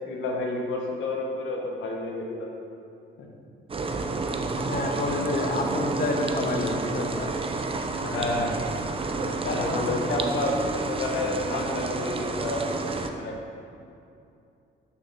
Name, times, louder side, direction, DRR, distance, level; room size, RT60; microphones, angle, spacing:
voice 1, 0.0-2.5 3.2-3.3 8.0-8.7 9.4-13.4, left 2 dB, 80° left, 0 dB, 1.4 m, -30 dB
sound 1, 3.7-13.1, right 3 dB, 30° right, 0.6 m, -30 dB
voice 2, 4.6-7.3 9.2-10.5, left 3 dB, 45° left, 3 dB, 1.1 m, -30 dB
6.5 x 5.9 x 5.9 m, 2.6 s
cardioid pair, 90°, 20 cm